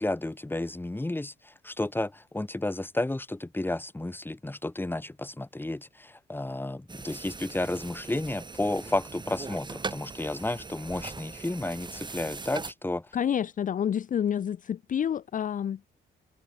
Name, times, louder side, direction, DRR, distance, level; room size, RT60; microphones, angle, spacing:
voice 1, 0.0-13.2, left 2 dB, 10° left, 2.0 m, -32 dB
sound 1, 6.9-12.7, right 4 dB, 20° right, 1.3 m, -40 dB
voice 2, 13.1-15.9, left 9 dB, 40° left, 0.5 m, -28 dB
cardioid pair, 90°, 20 cm